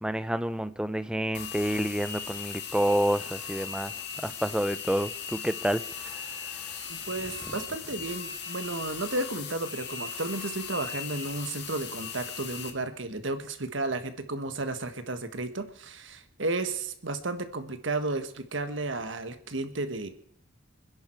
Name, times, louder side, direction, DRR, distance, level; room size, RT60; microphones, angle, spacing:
voice 1, 0.0-3.9 4.2-6.2, equal, 5° right, 0.6 m, -29 dB
sound 1, 1.3-12.7, left 7 dB, 60° left, 1.9 m, -38 dB
voice 2, 6.9-20.1, right 2 dB, 90° right, 1.6 m, -33 dB
26.0 x 10.5 x 4.6 m
head